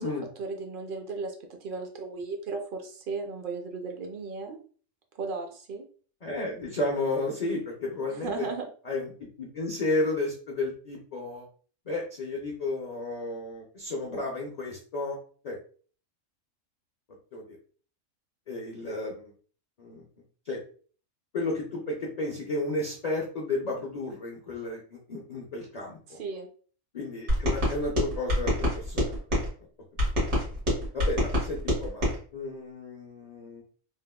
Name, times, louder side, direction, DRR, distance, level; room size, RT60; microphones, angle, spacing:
voice 1, 0.4-1.3 1.6-4.6 5.1-5.8 8.1-8.7 26.1-26.5, right 4 dB, 60° right, 3 dB, 0.6 m, -35 dB
voice 2, 6.2-8.5 8.8-9.1 9.4-11.5 11.9-15.2 15.4-15.6 17.3-17.6 18.5-19.3 19.8-20.0 20.5-20.6 21.3-26.2 26.9-29.5 30.9-33.6, left 2 dB, 55° left, -1 dB, 0.4 m, -32 dB
sound 1, 27.3-29.5 30.0-32.2, left 1 dB, 85° right, 1.8 m, -26 dB
3.5 x 2.0 x 2.2 m, 0.43 s
omnidirectional pair, 1.3 m